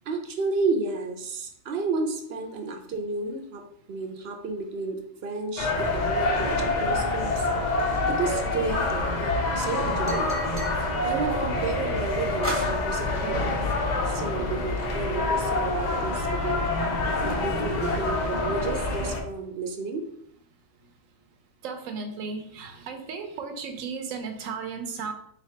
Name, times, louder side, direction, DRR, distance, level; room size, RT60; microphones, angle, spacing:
voice 1, 0.1-10.5 11.0-13.6 14.0-16.6 17.1-20.0, right 3 dB, 60° right, 4 dB, 0.7 m, -32 dB
sound 1, 5.6-19.2, left 2 dB, 55° left, 0.4 m, -26 dB
sound 2, 7.8-9.0 10.1-10.8 12.4-12.8, right 1 dB, 15° right, 0.5 m, -34 dB
voice 2, 21.6-25.1, right 5 dB, 75° right, 6 dB, 1.0 m, -35 dB
4.1 x 2.8 x 3.2 m, 0.69 s
omnidirectional pair, 1.4 m